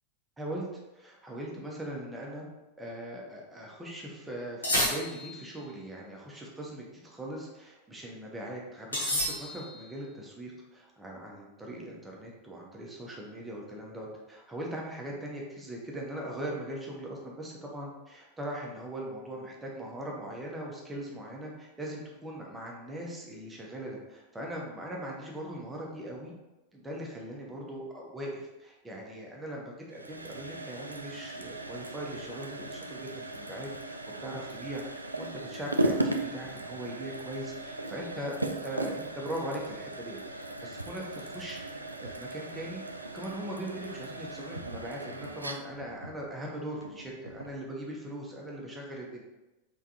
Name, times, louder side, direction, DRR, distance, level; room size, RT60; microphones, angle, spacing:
voice 1, 0.4-0.7 0.9-2.4 2.8-26.3 26.7-49.2, right 1 dB, 10° right, -2 dB, 0.9 m, -40 dB
sound 1, 4.6-5.5 8.9-9.9, left 1 dB, 70° left, 1.1 m, -30 dB
sound 2, 29.9-47.6, right 1 dB, 80° right, 0.3 m, -37 dB
3.6 x 3.6 x 2.8 m, 1.0 s
figure-of-eight pair, 90°, 0 cm